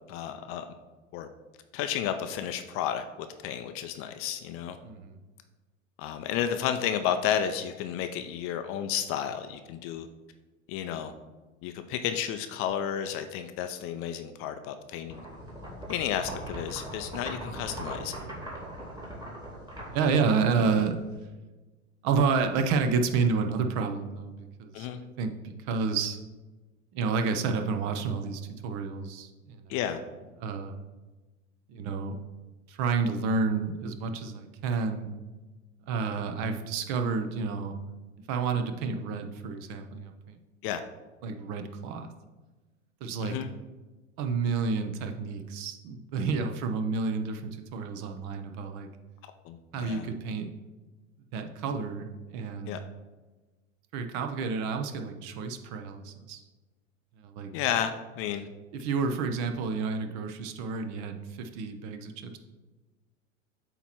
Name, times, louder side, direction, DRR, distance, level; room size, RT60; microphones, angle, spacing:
voice 1, 0.1-0.7 1.1-1.3 1.7-4.8 6.0-10.1 10.7-11.1 11.6-15.2 15.9-18.2 24.7-25.0 29.7-30.0 40.6-40.8 43.2-43.5 49.4-50.1 52.7-52.8 57.5-58.5, left 9 dB, 35° left, 8 dB, 0.4 m, -32 dB
voice 2, 4.8-5.2 19.9-21.0 22.0-24.9 25.2-26.2 26.9-29.7 30.4-30.7 31.7-32.2 32.7-35.1 35.9-37.7 38.3-40.4 41.2-42.1 43.0-43.3 44.2-48.9 49.7-50.5 51.3-52.8 53.9-56.4 57.2-57.5 58.7-62.4, right 5 dB, 45° right, 6 dB, 0.7 m, -30 dB
sound 1, 15.1-21.2, right 1 dB, 10° right, 2.0 m, -40 dB
8.3 x 3.0 x 4.4 m, 1.2 s
hypercardioid pair, 95°, 39 cm